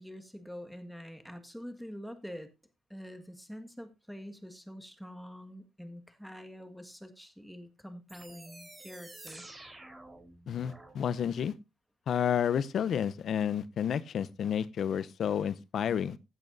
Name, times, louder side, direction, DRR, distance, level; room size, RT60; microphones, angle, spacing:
voice 1, 0.0-2.5 2.9-9.5, equal, ahead, 1.8 m, -46 dB
sound 1, 8.1-10.9, right 2 dB, 20° right, 4.0 m, -50 dB
voice 2, 10.5-11.5 12.1-16.2, left 8 dB, 60° left, 0.7 m, -30 dB
15.5 x 8.6 x 2.6 m
cardioid pair, 105°, 0 cm